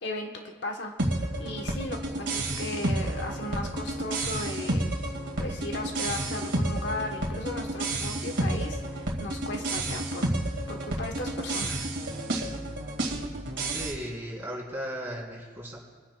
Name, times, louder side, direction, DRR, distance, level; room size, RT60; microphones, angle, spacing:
voice 1, 0.0-4.9 5.4-10.3 10.7-11.8, left 2 dB, 65° left, 2 dB, 1.1 m, -36 dB
sound 1, 1.0-13.9, right 1 dB, 65° right, 2.1 m, -31 dB
voice 2, 13.7-15.8, equal, 10° right, -4 dB, 3.3 m, -36 dB
27.5 x 10.0 x 2.3 m, 1.5 s
head